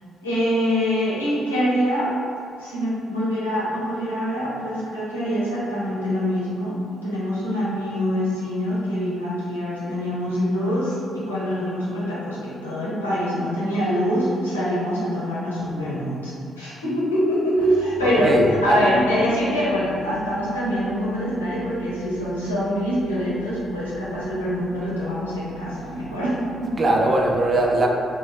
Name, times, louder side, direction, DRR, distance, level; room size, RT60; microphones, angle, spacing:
voice 1, 0.2-2.1 2.6-26.8, equal, 85° left, -9 dB, 0.5 m, -24 dB
voice 2, 18.0-18.9 26.8-27.9, right 1 dB, 35° right, 0 dB, 0.3 m, -20 dB
2.2 x 2.1 x 3.4 m, 2.3 s
figure-of-eight pair, 40°, 0 cm